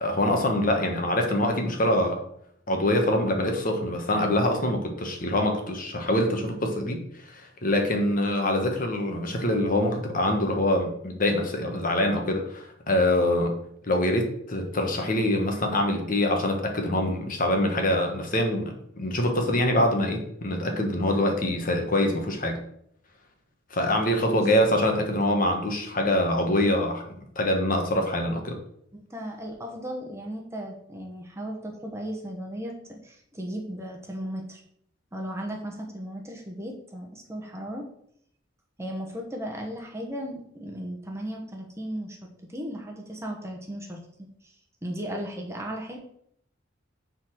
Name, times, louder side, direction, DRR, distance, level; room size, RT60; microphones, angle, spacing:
voice 1, 0.0-2.2 2.7-13.5 13.8-22.6 23.7-27.0 27.3-28.6, left 1 dB, 45° left, 3 dB, 1.2 m, -24 dB
voice 2, 28.9-34.6 35.1-37.9 38.8-42.2 42.5-44.0 44.4-44.5 44.8-46.0, equal, 15° right, 0 dB, 1.1 m, -36 dB
7.3 x 3.9 x 6.2 m, 0.69 s
head